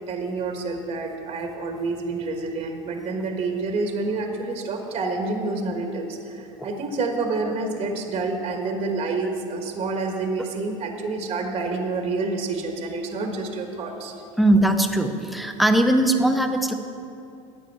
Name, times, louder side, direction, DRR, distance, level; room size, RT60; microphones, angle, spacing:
voice 1, 0.1-14.1, right 3 dB, 35° right, 3 dB, 1.4 m, -28 dB
voice 2, 14.4-16.7, right 1 dB, ahead, 6 dB, 0.9 m, -20 dB
12.5 x 9.2 x 4.7 m, 2.6 s
hypercardioid pair, 90°, 17 cm